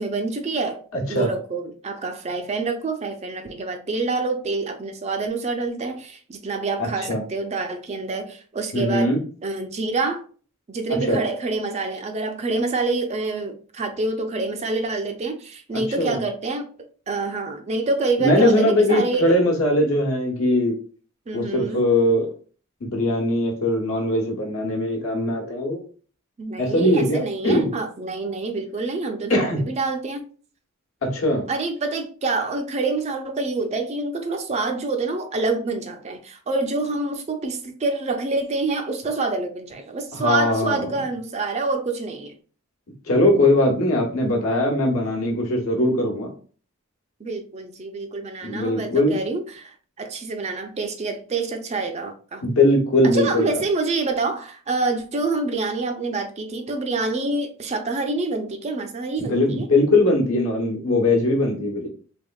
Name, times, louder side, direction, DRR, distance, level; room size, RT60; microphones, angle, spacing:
voice 1, 0.0-0.8 1.1-9.1 9.4-10.2 10.7-16.7 17.1-19.3 21.3-21.8 26.4-30.2 31.5-42.3 47.2-52.4 53.0-59.7, right 3 dB, 30° right, 0.4 m, -27 dB
voice 2, 0.9-1.3 6.8-7.2 8.7-9.2 11.1-11.2 16.0-16.2 18.2-20.7 21.3-22.3 22.8-25.8 26.6-27.7 29.3-29.6 31.0-31.4 40.1-40.8 43.1-46.3 48.4-49.2 52.4-53.6 59.2-61.9, left 1 dB, 70° left, 1.0 m, -20 dB
3.4 x 3.3 x 2.2 m
head